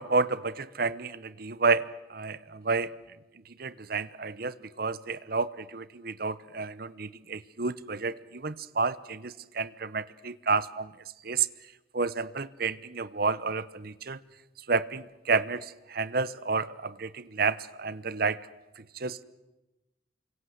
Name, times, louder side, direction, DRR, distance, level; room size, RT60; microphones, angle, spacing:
voice 1, 0.0-1.8 2.1-2.9 3.6-10.9 11.2-11.5 11.9-14.2 14.7-18.4 19.0-19.2, right 4 dB, 50° right, 16 dB, 0.9 m, -30 dB
29.0 x 25.0 x 7.9 m, 1.0 s
head